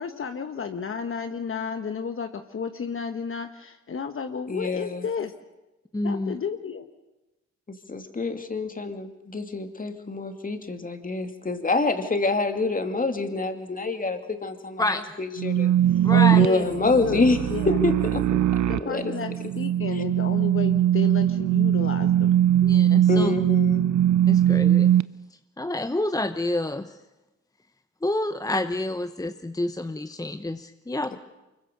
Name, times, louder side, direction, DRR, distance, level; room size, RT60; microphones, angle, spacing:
voice 1, 0.0-5.3 6.0-6.8 16.1-17.8 18.7-22.4, left 6 dB, 45° left, 7 dB, 1.3 m, -32 dB
voice 2, 4.5-5.0 7.9-14.8 15.2-15.7 16.3-17.4 17.7-18.4 18.8-19.1 22.6-22.7 23.1-23.9, left 3 dB, 30° left, 7 dB, 2.6 m, -26 dB
voice 3, 5.9-6.4 14.8-15.0 16.0-16.4 22.7-23.3 24.3-24.9 25.6-27.0 28.0-31.2, left 1 dB, 10° left, 9 dB, 1.0 m, -28 dB
sound 1, 15.4-25.0, right 11 dB, 70° right, 0.7 m, -21 dB
24.5 x 22.0 x 6.9 m, 1.0 s
cardioid pair, 80°, 29 cm